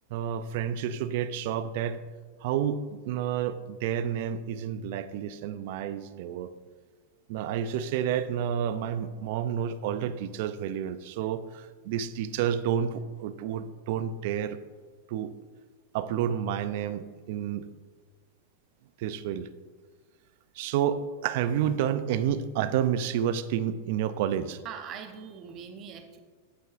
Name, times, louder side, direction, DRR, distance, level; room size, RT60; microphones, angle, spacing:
voice 1, 0.1-2.0 2.4-6.5 7.3-14.6 15.1-15.3 15.9-17.7 19.0-19.5 20.5-24.6, right 9 dB, 60° right, 13 dB, 0.4 m, -30 dB
voice 2, 24.6-26.2, right 7 dB, 40° right, 7 dB, 0.8 m, -41 dB
8.3 x 7.6 x 2.5 m, 1.5 s
hypercardioid pair, 125°, 0 cm